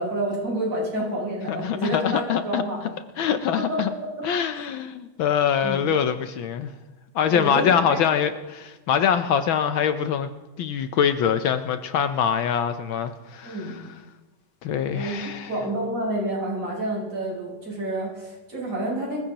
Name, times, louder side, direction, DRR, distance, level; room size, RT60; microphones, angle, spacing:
voice 1, 0.0-2.9 3.6-4.2 4.5-4.7 5.6-5.8 7.3-8.2 13.4-13.8 14.9-19.2, right 1 dB, 50° right, -5 dB, 7.1 m, -29 dB
voice 2, 1.5-2.6 3.2-3.9 4.2-6.7 7.1-10.3 10.6-13.8 14.6-15.5, left 8 dB, 70° left, 9 dB, 1.4 m, -24 dB
25.0 x 15.5 x 2.9 m, 1.1 s
omnidirectional pair, 2.4 m